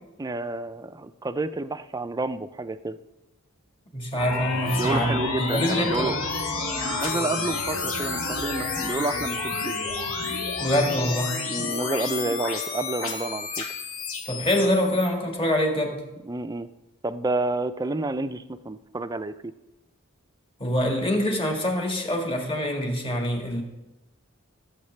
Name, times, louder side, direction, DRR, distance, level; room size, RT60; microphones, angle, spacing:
voice 1, 0.2-3.0 4.8-6.2 6.8-9.7 11.5-13.6 16.2-16.7 17.0-19.5, right 2 dB, 15° right, 12 dB, 0.4 m, -29 dB
voice 2, 3.9-6.2 10.6-11.4 14.2-16.0 20.6-23.6, equal, 25° left, 2 dB, 1.6 m, -25 dB
sound 1, 4.2-15.1, left 4 dB, 85° left, 1.9 m, -30 dB
17.5 x 8.0 x 3.2 m, 1.0 s
head